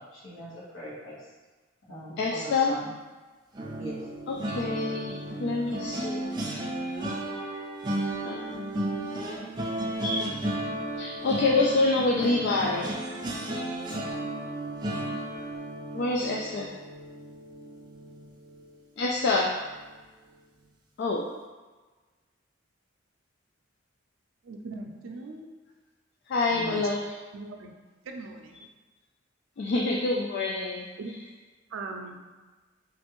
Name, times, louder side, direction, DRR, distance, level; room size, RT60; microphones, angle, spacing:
voice 1, 0.1-1.2 1.9-2.9 3.7-4.0, right 1 dB, 75° left, -8 dB, 1.3 m, -40 dB
voice 2, 2.2-2.7 4.3-6.4 8.2-9.4 10.0-10.2 11.0-12.9 15.9-16.7 19.0-19.5 21.0-21.3 26.3-27.0 29.6-30.9, left 3 dB, 60° left, -1 dB, 0.3 m, -27 dB
sound 1, 3.5-18.7 19.1-19.4 19.6-19.9, right 1 dB, 20° right, 0.5 m, -34 dB
voice 3, 24.4-25.5 26.5-26.9 27.3-27.7 28.0-28.7 31.0-31.1 31.7-32.2, right 3 dB, 80° right, 2 dB, 0.4 m, -39 dB
3.1 x 2.5 x 2.9 m, 1.3 s
head